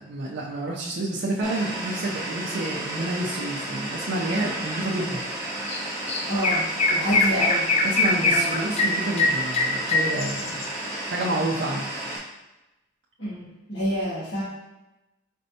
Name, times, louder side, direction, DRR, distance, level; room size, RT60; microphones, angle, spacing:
voice 1, 0.0-5.2 7.1-7.2 7.8-10.6 11.0-11.8, right 2 dB, 60° right, -5 dB, 0.5 m, -29 dB
sound 1, 1.4-12.2, right 1 dB, 20° right, 1.2 m, -33 dB
Chirp tweet, 5.7-5.8 6.1-10.7, left 2 dB, 30° left, 0.4 m, -22 dB
voice 2, 6.3-7.7 8.1-8.7 13.2-14.4, equal, 65° left, -12 dB, 1.4 m, -29 dB
4.4 x 4.3 x 2.7 m, 1.0 s
head